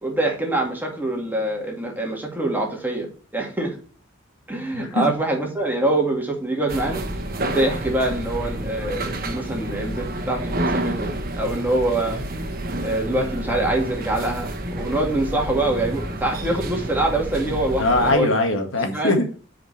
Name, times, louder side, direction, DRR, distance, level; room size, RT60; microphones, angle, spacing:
voice 1, 0.0-3.7 4.5-7.0 7.4-11.1 11.4-12.2 12.8-18.3 18.9-19.1, right 2 dB, 10° right, 0 dB, 2.3 m, -24 dB
voice 2, 4.7-5.0 17.8-19.4, left 2 dB, 80° left, 4 dB, 1.8 m, -21 dB
sound 1, 6.7-18.1, right 1 dB, 50° right, 1.4 m, -29 dB
7.9 x 5.1 x 4.4 m, 0.39 s
head